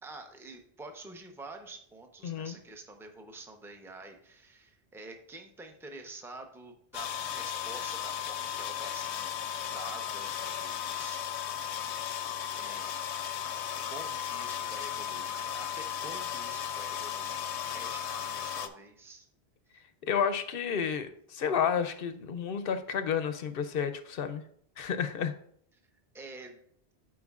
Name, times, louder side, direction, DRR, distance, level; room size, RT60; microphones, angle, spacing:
voice 1, 0.0-9.4 9.7-11.3 12.5-12.9 13.9-17.4 17.7-19.3 26.1-26.6, right 2 dB, 5° right, 4 dB, 0.6 m, -48 dB
voice 2, 2.2-2.5 20.0-24.4 24.8-25.3, left 7 dB, 65° left, 9 dB, 0.7 m, -31 dB
sound 1, 6.9-18.7, left 9 dB, 85° left, 0.9 m, -35 dB
12.0 x 4.5 x 2.4 m, 0.65 s
omnidirectional pair, 1.1 m